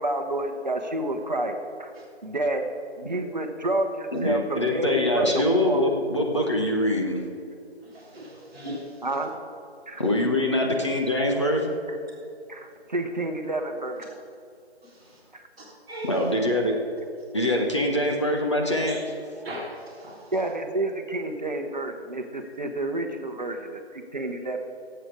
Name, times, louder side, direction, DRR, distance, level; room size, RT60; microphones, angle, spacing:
voice 1, 0.0-1.9 2.2-2.6 3.0-5.8 9.0-9.3 9.9-10.0 10.5-10.7 12.5-14.2 15.3-15.5 20.3-24.6, right 1 dB, 40° right, 5 dB, 1.0 m, -29 dB
voice 2, 4.1-7.2 10.0-11.8 16.0-16.7 17.3-19.0, left 1 dB, 25° left, 0 dB, 0.9 m, -24 dB
voice 3, 7.8-9.2 14.8-15.2 15.6-16.2 18.9-19.0 19.3-20.3, equal, 5° right, -10 dB, 1.1 m, -39 dB
17.0 x 8.0 x 4.8 m, 2.5 s
figure-of-eight pair, 155°, 33 cm